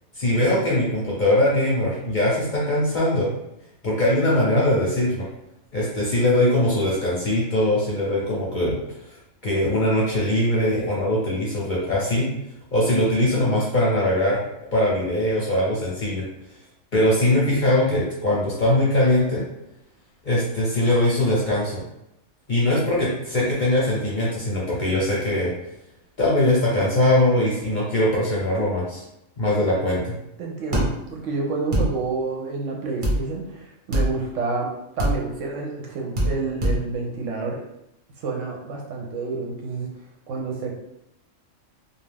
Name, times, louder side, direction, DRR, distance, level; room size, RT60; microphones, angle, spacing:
voice 1, 0.2-3.3 3.8-5.3 5.7-8.8 9.4-12.3 12.7-14.4 14.7-16.2 16.9-19.4 20.2-21.8 22.5-25.5 26.2-29.0 29.4-30.1, left 1 dB, 50° left, -6 dB, 0.6 m, -21 dB
voice 2, 30.4-34.7 35.0-37.6 38.2-39.9 40.3-40.7, right 4 dB, 70° right, 0 dB, 0.9 m, -29 dB
sound 1, 30.7-30.9 31.7-31.9 33.0-33.2 33.9-34.1 35.0-35.1 36.1-36.3 36.6-36.8, right 1 dB, 45° right, 0.8 m, -21 dB
2.4 x 2.3 x 3.3 m, 0.85 s
omnidirectional pair, 1.4 m